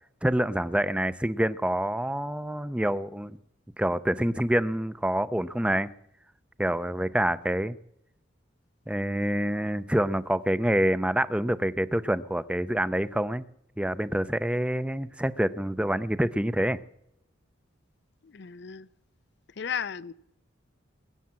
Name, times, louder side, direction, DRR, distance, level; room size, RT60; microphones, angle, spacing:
voice 1, 0.2-3.4 3.8-5.9 6.6-7.8 8.9-13.5 13.8-16.8, right 1 dB, 5° right, 15 dB, 0.5 m, -27 dB
voice 2, 18.2-18.9 19.5-20.1, left 7 dB, 55° left, 17 dB, 0.5 m, -35 dB
21.5 x 8.3 x 7.5 m, 0.82 s
head